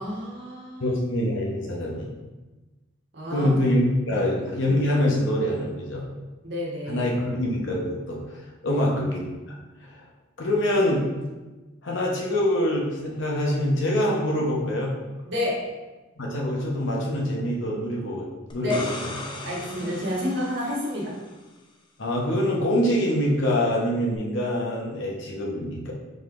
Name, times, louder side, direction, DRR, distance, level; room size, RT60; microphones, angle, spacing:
voice 1, 0.0-0.8 3.1-3.5 4.1-4.3 6.4-7.1 8.6-8.8 15.2-15.6 18.6-18.8 19.4-21.1, left 1 dB, 60° right, -5 dB, 1.3 m, -30 dB
voice 2, 0.8-2.1 3.3-6.0 6.9-8.2 8.6-9.2 9.8-10.0 10.4-11.0 11.8-14.9 16.2-18.3 18.5-18.9 22.0-25.9, left 1 dB, 65° left, -3 dB, 0.9 m, -25 dB
sound 1, 18.5-21.3 24.2-24.3, left 2 dB, 25° left, 0.4 m, -38 dB
5.1 x 3.9 x 2.5 m, 1.2 s
head